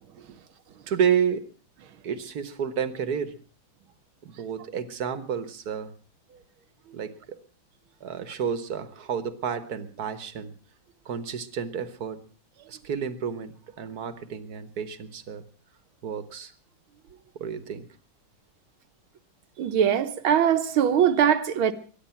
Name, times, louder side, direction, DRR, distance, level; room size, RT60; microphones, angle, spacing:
voice 1, 0.9-1.4 2.0-3.4 4.2-5.9 6.9-7.4 8.0-10.5 11.0-12.2 12.7-15.4 16.0-16.5 17.3-17.9, right 7 dB, 55° right, 1.5 m, -30 dB
voice 2, 19.6-21.7, right 9 dB, 85° right, 1.9 m, -21 dB
23.0 x 10.0 x 5.7 m
omnidirectional pair, 2.2 m